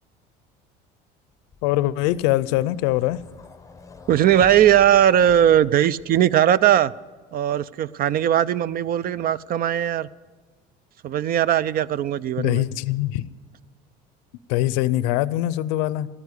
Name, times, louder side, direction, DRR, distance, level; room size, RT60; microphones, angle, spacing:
sound 1, 1.5-6.4, left 4 dB, 15° left, 0.7 m, -45 dB
voice 1, 1.6-3.2 12.4-13.3 14.5-16.1, left 15 dB, 80° left, 0.5 m, -22 dB
voice 2, 4.1-6.9 7.3-10.1 11.0-12.6, right 10 dB, 45° right, 0.4 m, -19 dB
13.5 x 9.8 x 8.2 m
supercardioid pair, 90°, 21 cm